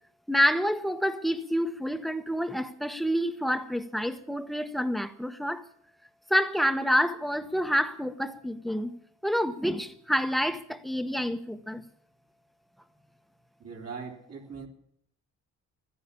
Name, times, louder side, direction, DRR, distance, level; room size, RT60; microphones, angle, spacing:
voice 1, 0.3-5.6 6.3-8.9 9.2-11.8, equal, ahead, 1.1 m, -28 dB
voice 2, 13.6-14.7, right 5 dB, 55° right, 3.5 m, -40 dB
14.0 x 10.0 x 8.4 m
cardioid pair, 90°, 30 cm